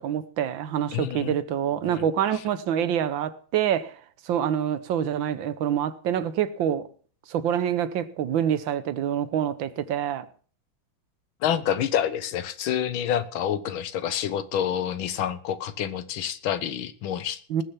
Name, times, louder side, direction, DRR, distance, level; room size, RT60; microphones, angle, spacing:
voice 1, 0.0-3.9 4.2-6.9 7.3-10.3 17.5-17.6, right 9 dB, 75° right, 1.6 m, -26 dB
voice 2, 0.9-1.3 1.9-2.0 11.4-17.4, left 9 dB, 85° left, 1.8 m, -28 dB
19.5 x 6.6 x 5.9 m
omnidirectional pair, 2.2 m